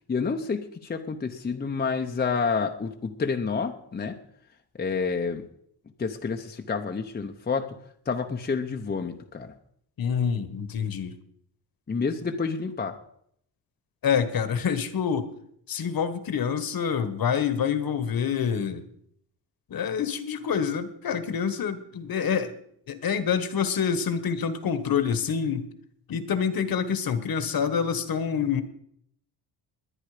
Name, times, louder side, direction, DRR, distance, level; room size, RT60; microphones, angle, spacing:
voice 1, 0.1-4.2 4.8-5.4 6.0-7.8 8.1-9.5 11.9-13.0, left 5 dB, 20° left, 5 dB, 0.8 m, -29 dB
voice 2, 10.0-11.1 14.0-15.3 15.7-18.8 19.7-22.5 22.9-25.7 26.1-28.6, left 7 dB, 55° left, 12 dB, 1.4 m, -27 dB
21.0 x 9.9 x 5.0 m, 0.69 s
wide cardioid pair, 160°, 43 cm